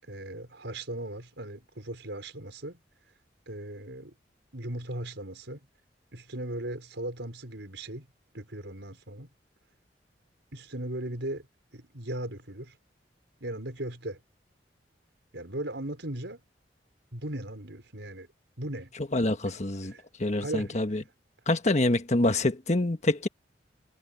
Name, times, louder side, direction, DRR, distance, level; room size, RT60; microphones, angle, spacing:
voice 1, 0.0-2.8 3.5-4.1 4.5-5.6 6.1-8.1 8.3-9.3 10.5-11.5 11.7-12.8 13.4-14.2 15.3-16.4 17.1-18.3 18.6-18.9 19.9-20.0 20.4-20.8, right 1 dB, 90° right, 5.1 m, -37 dB
voice 2, 19.1-19.9 20.2-21.0 21.5-23.3, left 2 dB, 40° left, 1.4 m, -26 dB
head